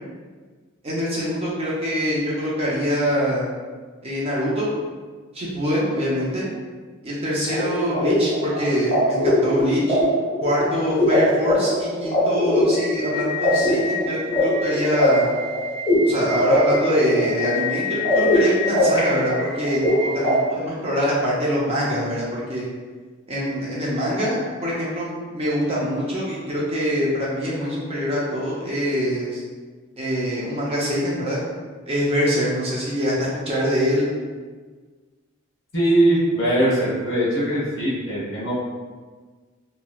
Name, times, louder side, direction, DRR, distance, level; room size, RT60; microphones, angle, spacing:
voice 1, 0.8-3.5 4.0-4.7 5.3-6.4 7.0-10.0 10.4-15.3 16.0-22.7 23.3-29.4 30.0-31.4 31.9-34.1, equal, 30° right, -6 dB, 0.6 m, -24 dB
sound 1, 7.5-20.3, left 1 dB, 20° left, 1.0 m, -21 dB
voice 2, 35.7-38.5, right 1 dB, 60° left, -7 dB, 1.1 m, -21 dB
3.1 x 2.7 x 2.3 m, 1.4 s
head